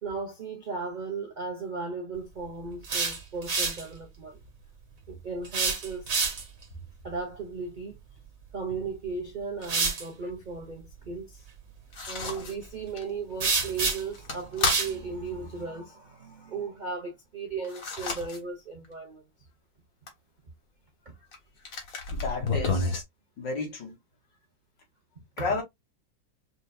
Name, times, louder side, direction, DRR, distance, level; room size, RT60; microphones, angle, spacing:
voice 1, 0.0-4.4 5.1-6.1 7.0-8.0 8.5-11.5 12.1-19.2 21.1-21.2 25.4-25.6, right 4 dB, 75° right, 0.4 m, -36 dB
sound 1, 2.7-3.8 5.4-6.6 8.7-8.8 9.6-10.0 13.4-14.2 14.7-14.9, right 4 dB, 45° right, 1.8 m, -28 dB
sound 2, 11.9-12.6 13.0-13.1 13.4-13.5 13.8-14.8 17.6-18.4 18.8-18.9 20.1-20.2 21.3-21.4 21.7-23.0, left 3 dB, 45° left, 1.7 m, -30 dB
voice 2, 22.1-22.9 23.4-24.0 25.4-25.6, left 3 dB, 65° left, 2.3 m, -32 dB
5.4 x 2.6 x 2.2 m
omnidirectional pair, 2.1 m